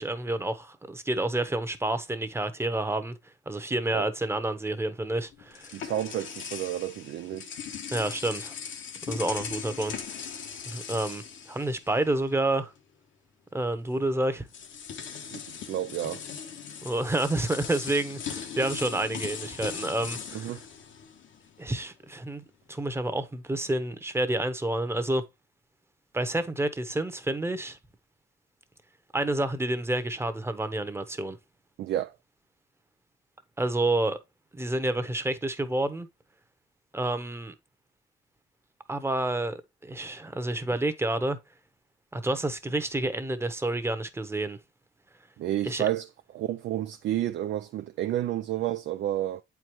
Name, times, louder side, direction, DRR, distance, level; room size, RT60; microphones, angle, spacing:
voice 1, 0.0-3.1 3.5-5.8 7.9-8.6 9.1-10.0 10.7-12.7 13.5-14.5 16.8-20.5 21.6-25.2 26.1-27.8 29.1-31.4 33.6-34.2 34.5-36.1 36.9-37.5 38.9-41.4 42.1-44.6 45.6-45.9, right 2 dB, 10° right, 0.9 m, -29 dB
sound 1, 5.0-12.3 12.6-12.8 13.9-14.0 14.5-21.6, left 7 dB, 75° left, 1.3 m, -39 dB
voice 2, 5.7-7.5 15.3-16.2 20.3-20.6 31.8-32.2 45.4-49.4, right 12 dB, 65° right, 0.4 m, -31 dB
8.1 x 4.7 x 3.0 m
cardioid pair, 90°, 20 cm